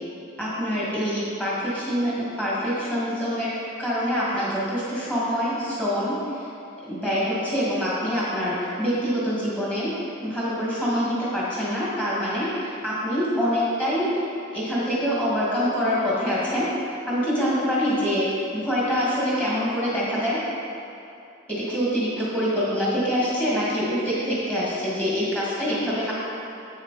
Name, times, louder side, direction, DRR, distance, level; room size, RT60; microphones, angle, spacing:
voice 1, 0.4-6.5 6.9-10.0 10.2-14.2 14.5-16.7 17.1-20.4 21.5-26.1, equal, 5° left, -8 dB, 2.0 m, -25 dB
8.8 x 6.4 x 4.1 m, 2.8 s
head